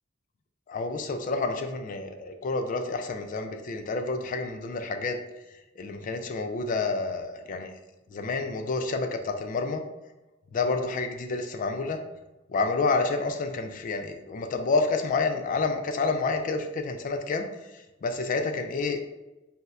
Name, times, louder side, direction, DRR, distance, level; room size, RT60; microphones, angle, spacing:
voice 1, 0.7-5.2 5.8-7.7 8.1-9.8 10.5-12.0 12.5-17.5 18.0-19.1, left 3 dB, 40° left, 5 dB, 0.3 m, -29 dB
4.0 x 2.1 x 2.3 m, 1.0 s
head